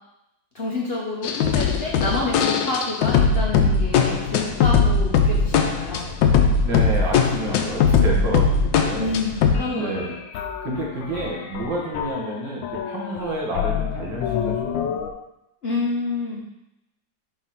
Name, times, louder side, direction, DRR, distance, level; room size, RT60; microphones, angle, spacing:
voice 1, 0.5-6.1 8.0-8.4 9.0-10.2 15.6-16.4, left 2 dB, 45° left, -4 dB, 0.9 m, -28 dB
sound 1, 1.2-9.7 10.0-10.1 10.3-12.3 12.6-15.1, left 5 dB, 80° left, 1.3 m, -21 dB
voice 2, 6.6-9.1 9.7-10.1 10.6-14.8, right 1 dB, 75° right, -2 dB, 2.1 m, -29 dB
5.0 x 3.9 x 5.8 m, 0.87 s
omnidirectional pair, 2.0 m